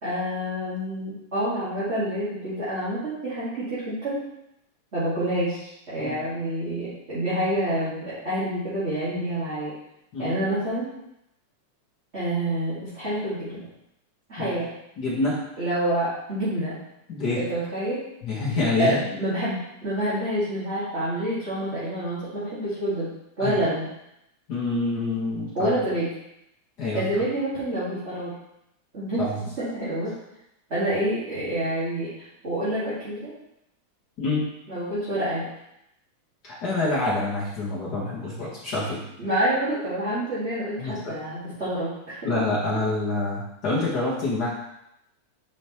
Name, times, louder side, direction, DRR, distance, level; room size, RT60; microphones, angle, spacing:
voice 1, 0.0-4.3 4.9-9.7 10.2-10.9 12.1-13.6 14.3-14.7 15.6-16.8 17.3-18.0 18.8-23.1 23.4-23.9 25.5-26.1 26.9-28.3 28.9-29.2 29.6-30.1 30.7-32.1 32.4-33.3 34.7-35.4 39.2-42.2, right 1 dB, 25° right, -12 dB, 1.8 m, -27 dB
voice 2, 15.0-15.4 17.1-17.4 18.2-19.0 23.4-23.6 24.5-25.7 26.8-27.2 29.2-29.4 34.2-34.4 36.4-39.0 40.8-41.2 42.2-44.5, left 2 dB, 50° left, -7 dB, 1.3 m, -26 dB
7.1 x 5.1 x 3.1 m, 0.81 s
omnidirectional pair, 3.6 m